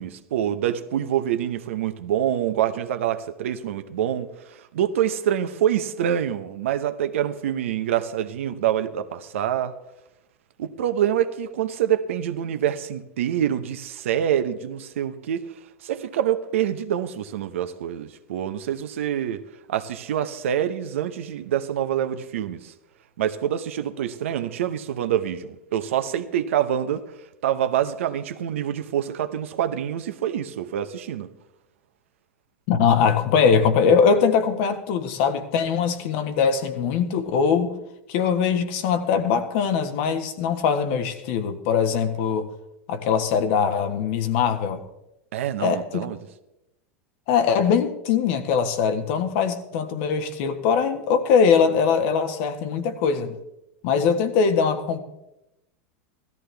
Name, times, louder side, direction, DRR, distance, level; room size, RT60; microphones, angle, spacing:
voice 1, 0.0-9.7 10.6-15.5 15.8-19.4 19.7-22.7 23.2-27.0 27.4-31.3 45.3-46.2, right 10 dB, 75° right, 0.9 m, -26 dB
voice 2, 32.7-37.7 38.1-42.5 42.9-44.8 45.6-46.0 47.3-53.4 53.8-55.0, left 6 dB, 60° left, 1.5 m, -21 dB
16.5 x 13.5 x 3.4 m
hypercardioid pair, 100°, 7 cm